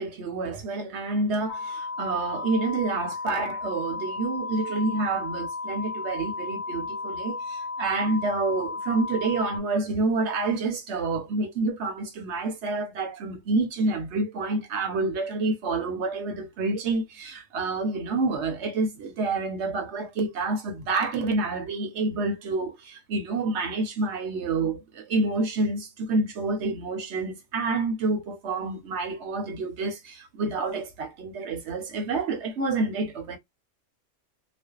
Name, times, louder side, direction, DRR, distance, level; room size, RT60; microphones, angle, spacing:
voice 1, 0.0-33.4, right 3 dB, 65° right, 1.0 m, -28 dB
sound 1, 1.5-9.6, left 3 dB, 75° left, 0.9 m, -34 dB
2.5 x 2.2 x 2.3 m
omnidirectional pair, 1.3 m